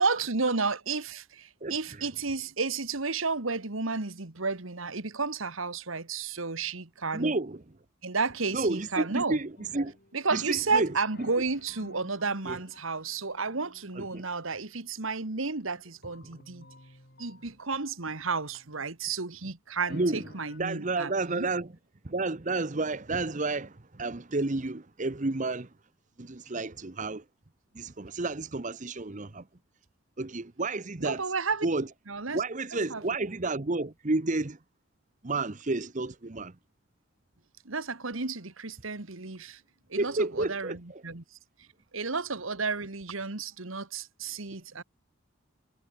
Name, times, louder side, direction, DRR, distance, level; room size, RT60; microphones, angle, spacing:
voice 1, 0.0-7.3 8.0-9.4 10.1-16.7 17.2-21.5 31.0-31.7 32.1-32.4 32.9-33.0 37.7-39.6 39.9-41.4 41.9-44.8, right 4 dB, 75° right, 1.9 m, -32 dB
voice 2, 1.6-2.1 7.1-7.8 8.5-10.0 10.3-11.3 12.4-12.6 14.0-14.2 19.9-20.3 20.6-21.7 22.0-25.7 26.2-27.2 27.7-29.5 30.2-31.3 31.6-31.9 32.3-34.6 35.2-36.6 40.0-41.0, right 3 dB, 35° right, 0.9 m, -31 dB
sound 1, 9.6-10.7 11.1-19.2 19.7-20.6, left 2 dB, 50° left, 7.9 m, -55 dB
head